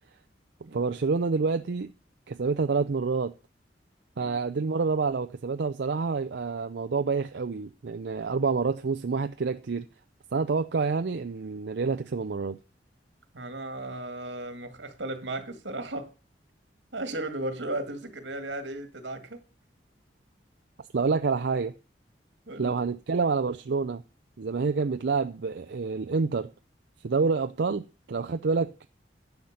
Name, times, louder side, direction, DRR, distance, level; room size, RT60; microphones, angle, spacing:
voice 1, 0.7-1.9 2.3-3.3 4.2-9.8 10.3-12.6 20.9-21.7 22.6-24.0 24.4-26.5 27.0-28.9, right 4 dB, 70° right, 0.5 m, -28 dB
voice 2, 13.3-16.1 16.9-19.4 22.5-22.8, right 2 dB, 90° right, 1.8 m, -35 dB
11.0 x 5.8 x 6.4 m
head